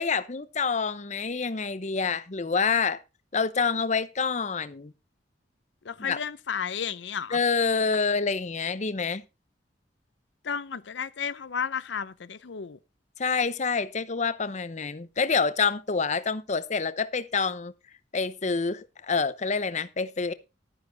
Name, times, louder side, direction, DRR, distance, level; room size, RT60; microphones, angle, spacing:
voice 1, 0.0-3.0 3.3-4.9 6.0-6.2 7.3-9.2 13.2-17.7 18.1-20.3, left 5 dB, 40° left, 0.8 m, -27 dB
voice 2, 5.8-7.4 10.4-12.8, left 6 dB, 85° left, 0.6 m, -33 dB
12.0 x 9.5 x 3.9 m
head